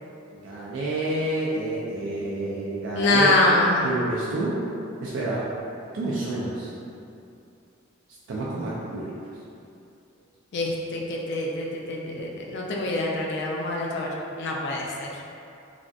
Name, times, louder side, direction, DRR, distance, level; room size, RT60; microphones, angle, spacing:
voice 1, 0.4-3.4 3.8-4.6 5.0-5.4 5.9-6.7 8.3-9.1, right 2 dB, 70° right, -6 dB, 0.4 m, -28 dB
voice 2, 2.9-3.9 10.5-14.1 14.4-15.1, left 2 dB, 60° left, -2 dB, 0.3 m, -24 dB
3.2 x 2.3 x 2.6 m, 2.6 s
head